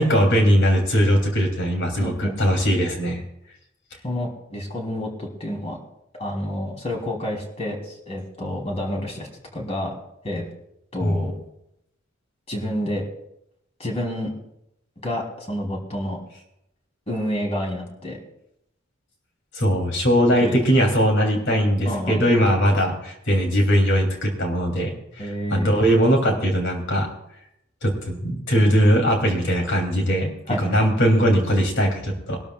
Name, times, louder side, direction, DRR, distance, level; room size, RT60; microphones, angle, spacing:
voice 1, 0.0-3.2 11.0-11.2 19.5-27.1 27.8-32.4, equal, 65° left, 2 dB, 3.2 m, -20 dB
voice 2, 2.0-2.7 4.0-5.8 6.2-9.9 10.2-10.4 10.9-11.4 12.5-13.0 13.8-14.3 15.0-16.2 17.1-18.2 20.4-20.6 21.8-22.4 25.2-25.8 30.5-30.9, left 1 dB, 30° left, 0 dB, 3.4 m, -29 dB
23.0 x 12.5 x 2.4 m, 0.84 s
head